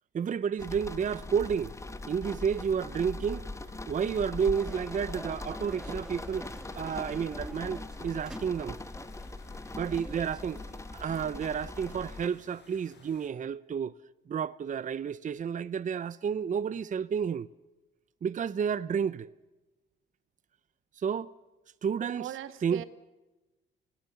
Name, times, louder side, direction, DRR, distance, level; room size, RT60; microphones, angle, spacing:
voice 1, 0.1-1.7 2.1-3.5 3.9-6.5 6.8-8.8 9.7-10.6 10.9-13.9 14.3-17.5 18.2-19.3 21.0-21.3 21.8-22.2 22.6-22.8, right 7 dB, 40° right, 0.7 m, -31 dB
sound 1, 0.6-13.3, left 4 dB, 60° left, 4.7 m, -57 dB
sound 2, 0.6-12.3, left 2 dB, 15° left, 1.1 m, -41 dB
sound 3, 4.5-10.4, right 1 dB, 5° right, 2.5 m, -48 dB
voice 2, 22.2-22.8, right 12 dB, 85° right, 1.6 m, -39 dB
28.5 x 18.0 x 7.0 m
cardioid pair, 90°, 20 cm